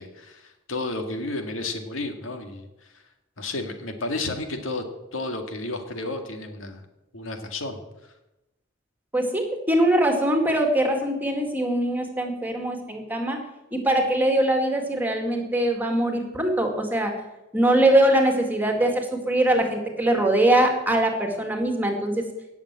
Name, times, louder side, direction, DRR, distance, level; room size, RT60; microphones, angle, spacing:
voice 1, 0.0-2.7 3.4-4.8 5.1-6.8 7.1-7.8, left 2 dB, 90° left, 5 dB, 2.0 m, -32 dB
voice 2, 9.1-13.4 13.7-17.1 17.5-22.2, right 1 dB, 10° right, 3 dB, 2.2 m, -22 dB
17.5 x 7.2 x 7.5 m, 0.96 s
head